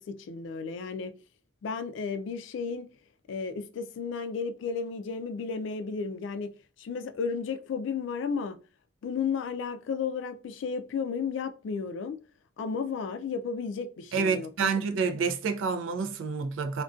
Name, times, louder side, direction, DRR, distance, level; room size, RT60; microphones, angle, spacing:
voice 1, 0.1-1.1 1.6-2.9 3.3-6.5 6.8-8.6 9.0-12.2 12.6-14.7, left 5 dB, 75° left, 0.3 m, -33 dB
voice 2, 14.1-16.8, right 5 dB, 90° right, 0.3 m, -28 dB
2.3 x 2.2 x 2.4 m
head